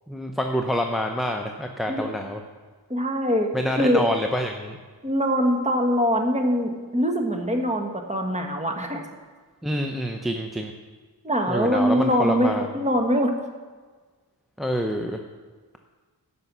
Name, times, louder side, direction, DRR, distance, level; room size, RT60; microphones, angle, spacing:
voice 1, 0.1-2.4 3.5-4.8 9.6-10.7 11.5-12.7 14.6-15.2, equal, ahead, 3 dB, 0.7 m, -27 dB
voice 2, 2.9-3.5 3.8-4.0 5.0-9.0 11.2-13.3, equal, 15° right, 2 dB, 1.5 m, -23 dB
13.5 x 5.6 x 6.1 m, 1.4 s
wide cardioid pair, 60°, 42 cm